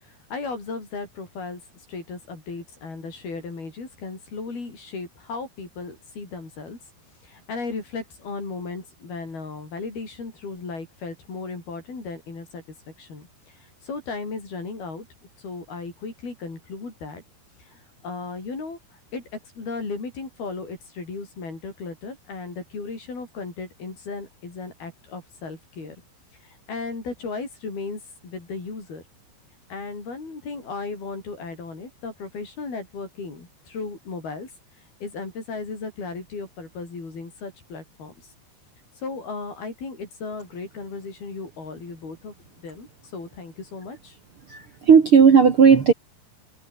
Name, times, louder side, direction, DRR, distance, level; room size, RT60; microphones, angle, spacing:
voice 1, 0.1-1.6 1.9-6.8 7.2-12.6 13.0-15.1 15.4-17.2 17.6-18.8 19.1-19.2 19.6-26.0 26.4-29.0 29.7-34.5 35.0-38.3 39.0-42.9 43.1-44.2, left 4 dB, 65° left, 9.9 m, -35 dB
voice 2, 44.5-45.9, right 6 dB, 45° right, 2.1 m, -14 dB
omnidirectional pair, 4.6 m